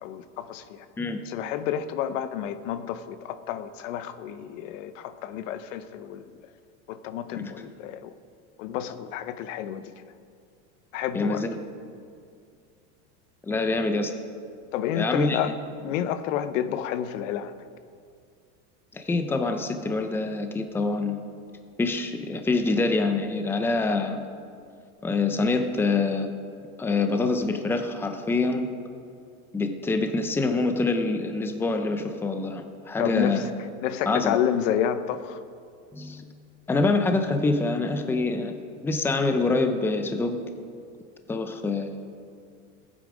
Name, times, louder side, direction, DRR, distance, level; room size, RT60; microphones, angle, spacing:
voice 1, 0.0-0.9 1.3-6.4 6.9-8.1 8.6-9.8 10.9-11.4 14.7-15.5 15.8-17.5 33.0-33.5 33.8-35.4, left 10 dB, 85° left, 11 dB, 0.8 m, -30 dB
voice 2, 11.1-11.6 13.4-14.1 15.0-15.5 18.9-21.2 21.8-24.2 25.0-26.3 26.8-28.7 29.5-33.5 34.1-34.4 35.9-36.2 36.7-38.6 38.8-40.4 41.3-42.0, left 3 dB, 5° left, 7 dB, 0.6 m, -25 dB
15.5 x 8.7 x 5.0 m, 2.3 s
supercardioid pair, 145°, 37 cm